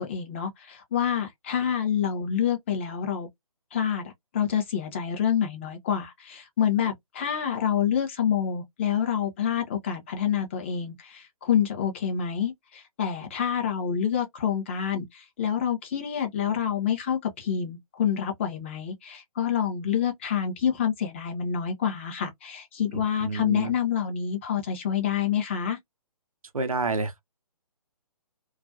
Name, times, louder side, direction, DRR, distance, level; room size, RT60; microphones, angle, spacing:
voice 1, 0.0-3.3 3.7-25.8, left 8 dB, 20° left, 0.5 m, -27 dB
voice 2, 22.9-23.7 26.5-27.2, right 3 dB, 70° right, 0.6 m, -29 dB
2.3 x 2.1 x 2.5 m
figure-of-eight pair, 135°, 19 cm